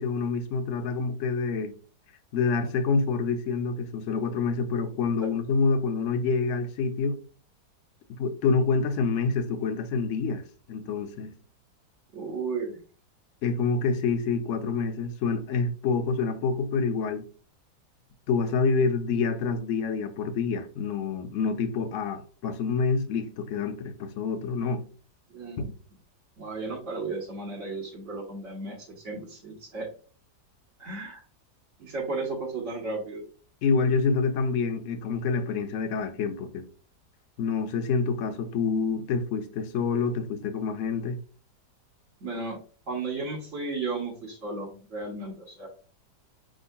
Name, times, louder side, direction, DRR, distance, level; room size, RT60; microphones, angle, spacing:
voice 1, 0.0-1.8 2.3-7.2 8.1-11.3 13.4-17.3 18.3-24.9 25.6-25.7 33.6-36.7 37.4-41.2, left 4 dB, 65° left, 0.8 m, -27 dB
voice 2, 12.1-12.8 25.3-25.7 26.4-29.9 30.8-31.2 31.8-33.2 42.2-42.6 42.9-45.7, right 3 dB, 50° right, 1.4 m, -34 dB
5.4 x 3.7 x 2.2 m
omnidirectional pair, 1.8 m